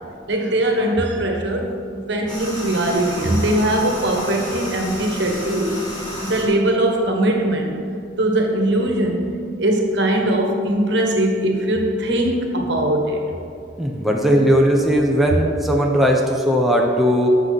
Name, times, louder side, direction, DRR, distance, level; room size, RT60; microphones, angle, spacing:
voice 1, 0.3-5.8 6.2-7.8 8.2-9.3 9.6-13.2, right 1 dB, 65° right, 2 dB, 1.4 m, -20 dB
sound 1, 2.3-6.4, equal, 25° left, 2.3 m, -31 dB
voice 2, 13.8-17.3, equal, ahead, -1 dB, 0.8 m, -18 dB
12.0 x 7.4 x 4.1 m, 2.4 s
head